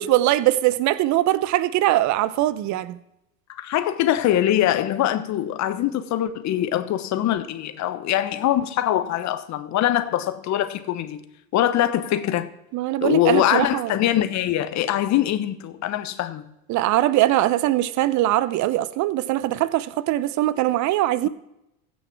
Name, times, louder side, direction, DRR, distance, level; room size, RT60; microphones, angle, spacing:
voice 1, 0.0-3.0 12.7-13.9 16.7-21.3, right 15 dB, 40° right, 0.7 m, -21 dB
voice 2, 3.6-11.2 11.5-12.5 13.0-16.4, left 12 dB, 40° left, 1.0 m, -23 dB
15.5 x 6.4 x 4.5 m
hypercardioid pair, 85°, 44 cm